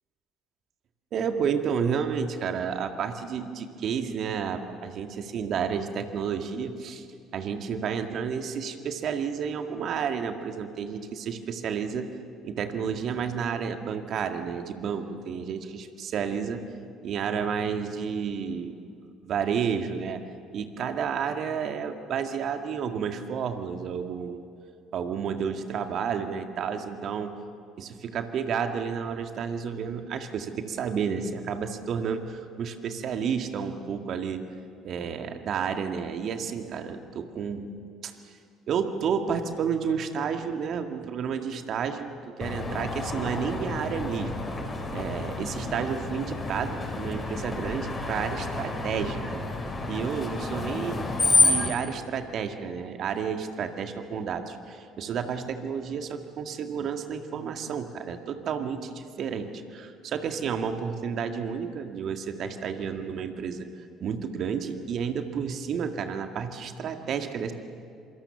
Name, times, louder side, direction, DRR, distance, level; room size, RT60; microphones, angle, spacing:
voice 1, 1.1-7.1 7.3-12.1 12.4-16.7 17.0-18.8 19.0-20.2 20.5-24.4 24.9-27.3 27.8-34.4 34.8-37.7 38.0-38.1 38.7-44.3 44.9-49.4 49.9-51.1 51.4-63.7 64.0-67.5, right 7 dB, 50° right, 6 dB, 2.0 m, -31 dB
Screech, 42.4-51.7, left 3 dB, 30° left, 5.6 m, -29 dB
27.0 x 24.5 x 7.2 m, 2.3 s
figure-of-eight pair, 55°, 0 cm